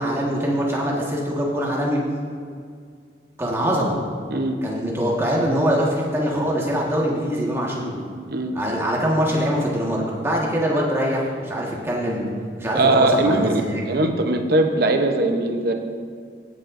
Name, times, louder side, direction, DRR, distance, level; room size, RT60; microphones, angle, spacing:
voice 1, 0.0-2.0 3.4-4.0 4.6-8.0 8.5-12.2 12.6-13.8, equal, 15° right, -4 dB, 1.5 m, -23 dB
voice 2, 12.7-15.7, right 2 dB, 60° right, 4 dB, 0.8 m, -20 dB
16.5 x 7.5 x 2.6 m, 2.1 s
head